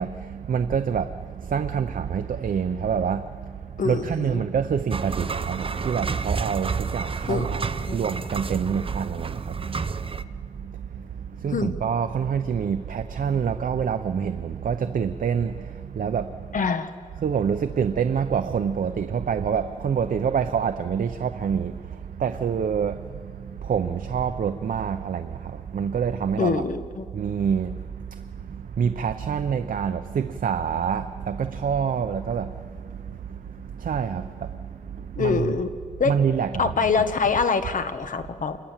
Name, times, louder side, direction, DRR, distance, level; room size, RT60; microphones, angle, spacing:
voice 1, 0.0-16.7 17.2-26.6 27.1-35.6 36.0-37.3, right 7 dB, 85° right, 0.7 m, -27 dB
voice 2, 3.8-4.4 7.3-7.6 7.9-8.0 11.5-11.7 16.5-16.9 26.4-27.1 35.2-35.7 36.0-36.1 36.6-38.6, left 5 dB, 70° left, 1.3 m, -25 dB
sound 1, 4.9-10.2, right 5 dB, 40° right, 0.7 m, -30 dB
27.0 x 21.5 x 7.4 m
wide cardioid pair, 110°, 14 cm